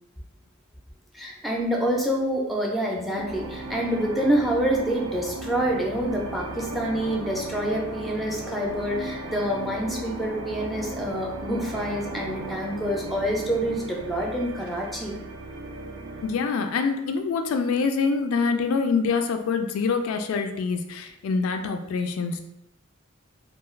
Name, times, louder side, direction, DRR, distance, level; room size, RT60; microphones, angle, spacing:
voice 1, 1.1-15.1, equal, ahead, -1 dB, 0.4 m, -27 dB
sound 1, 3.2-16.5, right 2 dB, 85° right, 0.4 m, -36 dB
voice 2, 16.2-22.4, left 5 dB, 85° left, 6 dB, 0.3 m, -25 dB
2.3 x 2.3 x 3.0 m, 0.85 s
head